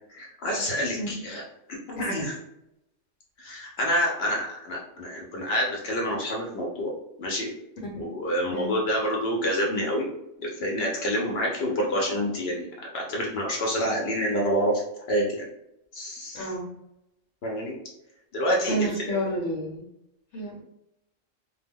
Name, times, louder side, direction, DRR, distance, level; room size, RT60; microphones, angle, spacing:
voice 1, 0.1-1.4 1.9-2.3 3.4-6.9 7.2-7.5 8.0-10.1 10.4-12.7 12.9-14.8 15.1-15.4 15.9-16.4 17.4-17.7 18.3-18.9, equal, 65° left, -1 dB, 0.7 m, -27 dB
voice 2, 16.3-16.7 18.7-19.9 20.3-20.6, right 1 dB, 80° left, -2 dB, 1.0 m, -30 dB
2.1 x 2.1 x 3.4 m, 0.83 s
omnidirectional pair, 1.3 m